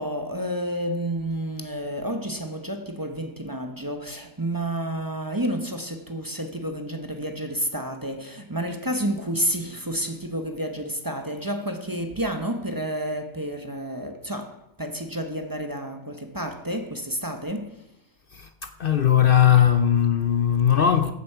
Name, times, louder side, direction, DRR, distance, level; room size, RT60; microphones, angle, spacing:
voice 1, 0.0-17.9, right 1 dB, 20° right, 1.1 m, -30 dB
voice 2, 18.3-21.1, left 9 dB, 55° left, 0.8 m, -19 dB
14.0 x 8.5 x 5.7 m
omnidirectional pair, 1.2 m